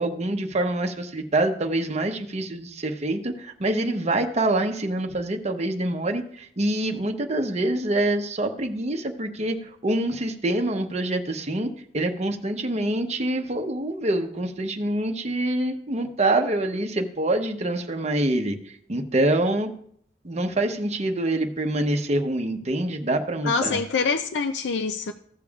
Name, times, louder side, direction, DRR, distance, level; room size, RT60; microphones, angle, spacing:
voice 1, 0.0-19.7 20.2-23.8, right 1 dB, 40° right, 0.8 m, -26 dB
voice 2, 23.4-25.1, left 5 dB, 80° left, 0.5 m, -25 dB
15.0 x 6.8 x 2.4 m
head